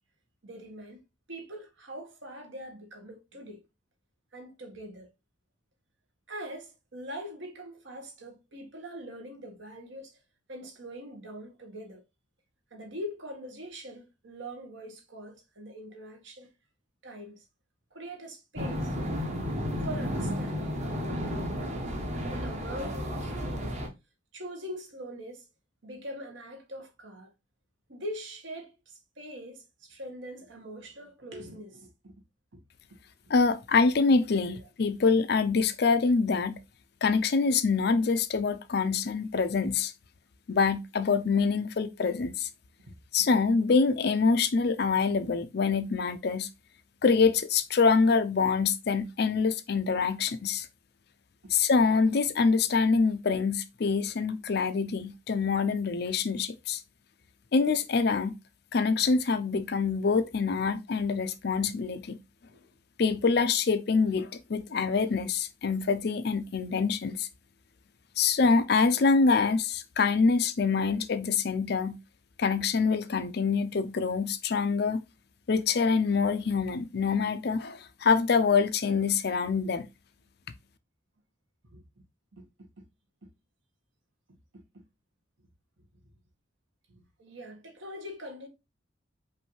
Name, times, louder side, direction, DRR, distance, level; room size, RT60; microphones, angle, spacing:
voice 1, 0.4-1.0 1.3-3.6 4.3-5.1 6.3-10.2 10.5-12.0 12.7-16.5 17.0-17.4 17.9-19.1 19.8-20.9 22.3-23.8 24.3-25.5 25.8-27.3 27.9-32.1 32.5-32.6 34.5-34.6 34.9-35.0 42.9-43.0 62.5-62.6 81.7-81.8 82.3-82.4 82.8-82.9 83.2-83.3 84.5-84.8 86.9-88.5, equal, 70° right, 1.3 m, -43 dB
sound 1, 18.6-23.9, equal, 35° right, 0.9 m, -32 dB
voice 2, 33.3-36.6 37.0-39.9 40.5-42.5 43.1-46.5 47.0-50.7 51.5-56.8 57.5-58.3 58.7-62.2 63.0-67.3 68.2-72.0 72.4-75.0 75.5-79.9, left 4 dB, 55° left, 0.4 m, -25 dB
5.3 x 2.6 x 3.1 m
head